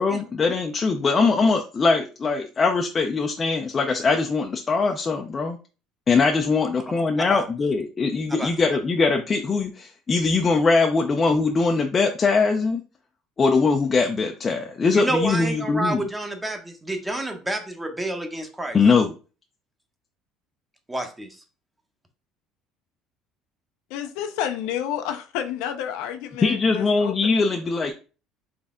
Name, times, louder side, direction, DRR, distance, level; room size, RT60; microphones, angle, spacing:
voice 1, 0.0-5.6 6.1-12.8 13.4-16.0 18.7-19.2 26.4-27.9, left 4 dB, 25° left, 0.5 m, -21 dB
voice 2, 7.0-7.4 8.3-8.5 14.9-18.8 20.9-21.4, right 1 dB, 10° right, 0.9 m, -29 dB
voice 3, 23.9-27.5, left 10 dB, 80° left, 0.6 m, -30 dB
4.1 x 3.3 x 3.7 m
cardioid pair, 130°, 0 cm